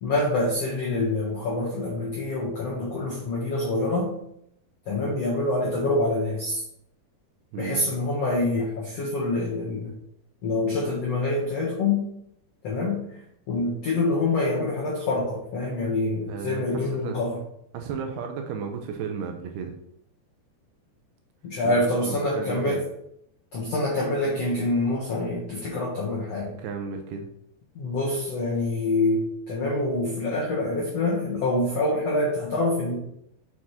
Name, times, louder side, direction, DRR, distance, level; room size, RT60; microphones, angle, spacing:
voice 1, 0.0-4.1 4.8-6.6 7.5-9.9 10.4-12.0 12.6-13.2 13.5-17.4 21.4-22.8 23.5-26.5 27.7-32.9, left 2 dB, 70° left, -4 dB, 1.5 m, -26 dB
voice 2, 7.5-7.9 16.3-17.2 17.7-19.7 21.6-21.8 22.1-22.8 26.6-27.3, right 6 dB, 75° right, 4 dB, 2.5 m, -33 dB
6.5 x 6.2 x 4.3 m, 0.74 s
omnidirectional pair, 5.1 m